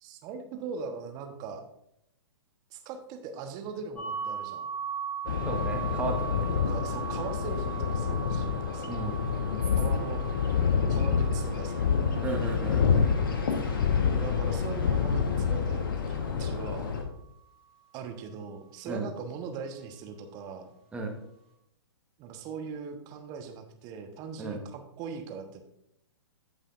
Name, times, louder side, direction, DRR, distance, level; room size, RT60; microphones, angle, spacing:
voice 1, 0.0-1.6 2.7-4.6 6.5-9.1 9.8-10.2 10.9-11.9 13.6-17.0 17.9-20.7 22.2-25.6, right 5 dB, 30° right, 5 dB, 1.2 m, -40 dB
sound 1, 4.0-15.7, right 7 dB, 5° left, 2.1 m, -40 dB
sound 2, 5.3-17.0, left 6 dB, 50° left, 1.4 m, -27 dB
voice 2, 5.4-6.5 8.9-9.2 12.2-12.8 18.9-19.1 20.9-21.1 24.4-24.6, right 3 dB, 10° right, 1 dB, 1.3 m, -34 dB
15.5 x 5.6 x 2.6 m, 0.77 s
figure-of-eight pair, 115°, 14 cm